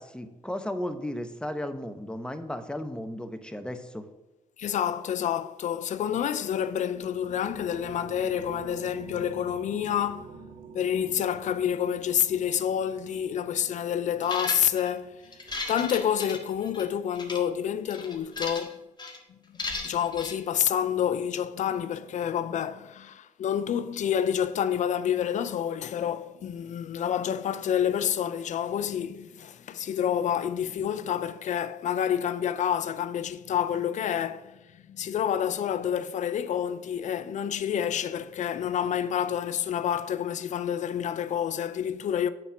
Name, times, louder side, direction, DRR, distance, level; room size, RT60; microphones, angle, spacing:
voice 1, 0.0-4.1, left 1 dB, 5° left, 0.9 m, -35 dB
voice 2, 4.6-10.3 10.7-15.2 15.7-18.8 19.5-34.6 34.9-42.3, left 9 dB, 65° left, 0.6 m, -28 dB
sound 1, 6.4-16.2, right 4 dB, 75° right, 1.0 m, -47 dB
sound 2, 14.2-14.9 15.3-16.8 17.2-17.4 17.9-18.7 19.0-19.2 19.6-20.3, left 3 dB, 30° left, 1.6 m, -35 dB
9.2 x 4.3 x 6.1 m
cardioid pair, 90°, 14 cm